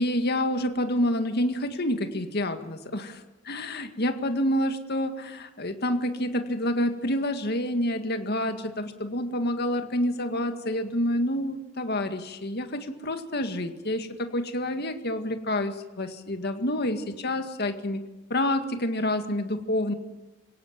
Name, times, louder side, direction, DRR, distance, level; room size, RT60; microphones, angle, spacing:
voice 1, 0.0-18.0 18.3-19.9, left 1 dB, 50° left, 7 dB, 1.9 m, -28 dB
26.5 x 17.5 x 7.5 m, 1.1 s
head